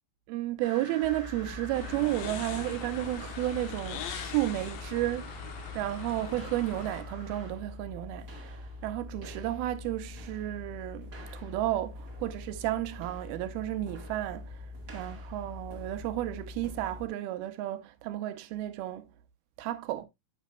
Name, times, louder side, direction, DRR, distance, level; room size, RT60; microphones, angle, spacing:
voice 1, 0.3-5.2 5.8-19.1 19.6-20.1, right 15 dB, 80° right, 2.6 m, -33 dB
sound 1, 0.6-7.5, equal, 20° right, 2.9 m, -48 dB
sound 2, 1.0-17.1, left 2 dB, 40° right, 1.2 m, -44 dB
sound 3, 1.7-7.0, left 9 dB, 75° left, 2.6 m, -42 dB
9.1 x 8.5 x 2.2 m
omnidirectional pair, 4.4 m